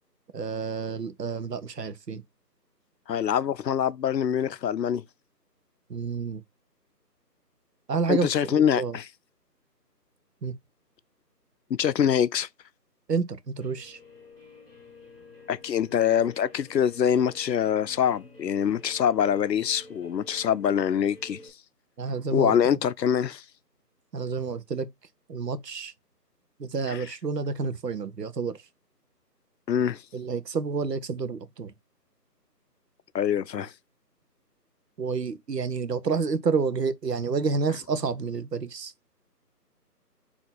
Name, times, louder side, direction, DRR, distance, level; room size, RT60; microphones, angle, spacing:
voice 1, 0.3-2.2 5.9-6.4 7.9-9.0 10.4-10.6 13.1-14.0 22.0-22.8 24.1-24.9 25.3-25.9 26.6-28.6 30.1-31.7 35.0-38.9, right 5 dB, 75° right, 0.9 m, -29 dB
voice 2, 3.1-5.0 8.1-9.1 11.7-12.5 15.5-21.4 22.3-23.4 26.9-27.0 29.7-30.0 33.1-33.7, left 8 dB, 80° left, 0.6 m, -24 dB
Guitar, 13.6-21.5, left 2 dB, 35° left, 1.7 m, -50 dB
4.2 x 2.9 x 4.0 m
figure-of-eight pair, 175°, 49 cm